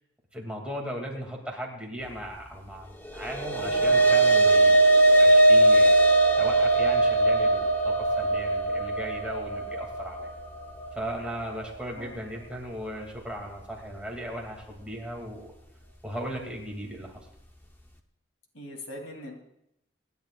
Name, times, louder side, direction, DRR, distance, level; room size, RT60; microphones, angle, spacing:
voice 1, 0.3-4.8 5.2-5.9 6.4-10.3 10.9-15.5 16.0-17.2, equal, 5° right, -1 dB, 2.4 m, -37 dB
sound 1, 3.1-11.7, right 2 dB, 10° left, 0.8 m, -20 dB
voice 2, 18.5-19.3, left 1 dB, 85° left, 2 dB, 3.0 m, -41 dB
25.5 x 11.0 x 2.4 m, 0.80 s
head